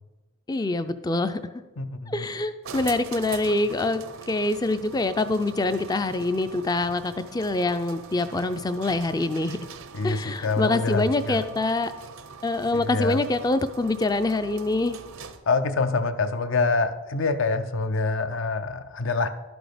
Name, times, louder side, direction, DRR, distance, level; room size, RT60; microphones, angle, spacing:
voice 1, 0.5-1.4 2.1-9.6 10.0-11.9 12.4-15.0, left 2 dB, 20° left, 11 dB, 0.4 m, -25 dB
voice 2, 1.8-2.3 9.9-11.4 12.9-13.2 15.5-19.3, left 3 dB, 65° left, 10 dB, 0.6 m, -25 dB
sound 1, 2.6-15.6, right 5 dB, 75° right, 0.6 m, -43 dB
12.0 x 6.2 x 5.0 m, 1.2 s
head